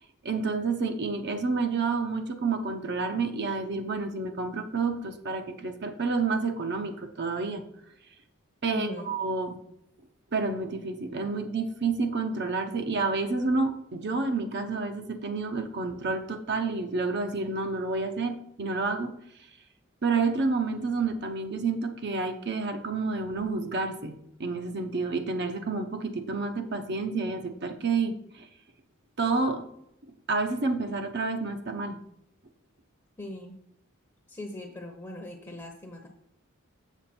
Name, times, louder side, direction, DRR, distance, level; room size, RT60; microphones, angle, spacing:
voice 1, 0.2-7.6 8.6-9.6 10.3-19.2 20.0-24.1 24.4-28.5 29.2-29.7 30.3-32.0, right 4 dB, 50° right, 6 dB, 0.8 m, -29 dB
voice 2, 8.7-9.1 33.2-33.6 34.3-36.1, left 1 dB, 15° left, 2 dB, 0.8 m, -40 dB
7.2 x 7.0 x 4.3 m, 0.76 s
head